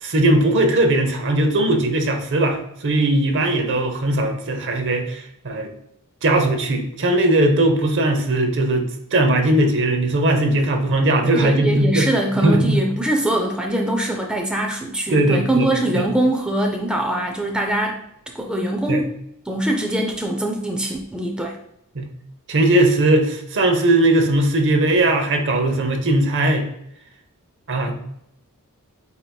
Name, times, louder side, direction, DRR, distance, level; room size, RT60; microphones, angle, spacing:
voice 1, 0.0-2.6 2.8-5.7 6.2-8.8 9.1-12.1 12.4-12.8 15.1-15.7 18.9-19.0 21.9-22.1 22.5-26.6 27.7-27.9, right 1 dB, 55° right, 5 dB, 0.7 m, -19 dB
voice 2, 11.3-18.0 18.3-19.1 19.5-21.6, right 1 dB, 5° right, 1 dB, 0.4 m, -22 dB
7.9 x 2.8 x 2.2 m, 0.77 s
head